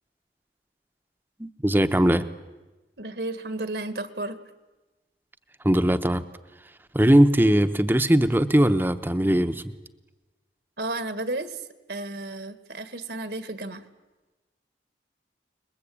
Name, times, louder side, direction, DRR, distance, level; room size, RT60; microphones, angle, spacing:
voice 1, 1.4-2.3 5.6-6.2 6.9-9.6, right 1 dB, 10° right, 10 dB, 0.9 m, -20 dB
voice 2, 3.0-4.4 10.8-11.6 11.9-13.8, right 2 dB, 70° right, 11 dB, 1.8 m, -32 dB
29.0 x 21.5 x 8.7 m, 1.1 s
head